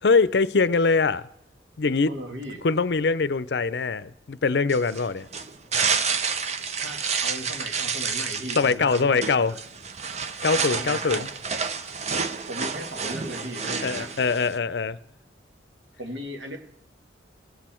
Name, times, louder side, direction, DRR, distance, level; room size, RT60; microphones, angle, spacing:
voice 1, 0.0-1.3 1.8-2.1 2.6-5.3 8.6-9.5 10.4-11.3 13.8-15.0, left 4 dB, 65° left, 0.6 m, -23 dB
voice 2, 2.1-2.7 3.7-4.0 6.8-9.6 10.7-11.2 12.5-14.1 16.0-16.6, equal, 80° right, 2.3 m, -37 dB
sound 1, 4.7-14.6, right 5 dB, 35° right, 0.8 m, -29 dB
21.0 x 8.4 x 4.4 m
head